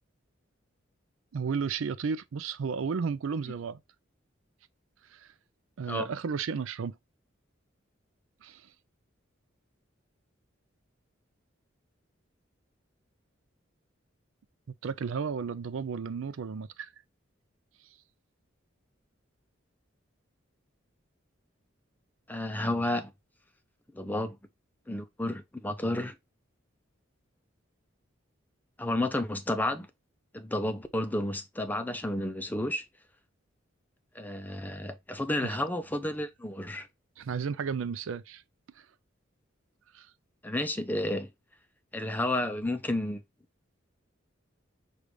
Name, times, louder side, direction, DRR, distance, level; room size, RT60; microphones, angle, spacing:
voice 1, 1.3-3.8 5.1-5.2 5.8-7.0 8.4-8.6 14.8-16.9 35.4-35.6 37.2-38.4 39.9-40.1, right 6 dB, 85° right, 0.4 m, -33 dB
voice 2, 22.3-23.1 23.9-24.4 24.9-26.2 28.8-29.9 30.3-32.9 34.1-36.9 40.4-41.3 41.9-43.2, left 1 dB, 10° left, 0.4 m, -31 dB
6.6 x 2.4 x 3.0 m
head